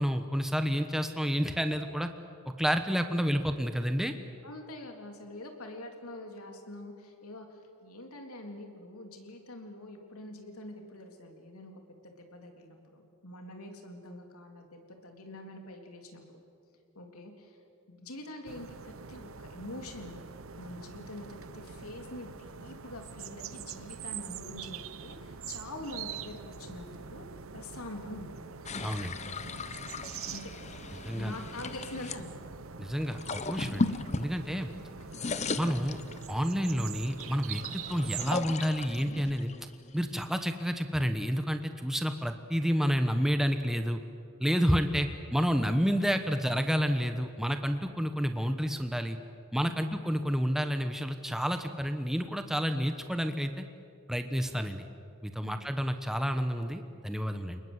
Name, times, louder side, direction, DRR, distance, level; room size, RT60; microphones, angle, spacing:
voice 1, 0.0-2.1 2.5-4.1 28.8-29.1 31.0-31.3 32.8-34.7 35.6-36.0 36.3-39.5 39.9-44.0 44.4-49.2 49.5-53.6 54.1-54.9 55.2-57.6, equal, ahead, 7 dB, 1.1 m, -30 dB
voice 2, 4.4-16.4 17.0-17.6 17.9-20.2 20.6-27.3 27.5-28.4 30.3-30.5 31.2-32.3 49.6-49.8 55.4-55.6, left 1 dB, 85° left, 3 dB, 3.6 m, -45 dB
sound 1, 18.5-38.3, right 6 dB, 65° right, 0.9 m, -44 dB
sound 2, 28.7-32.2 33.0-34.8 35.0-36.5 37.0-40.5, left 3 dB, 30° left, 0.9 m, -37 dB
29.5 x 20.0 x 8.1 m, 2.5 s
head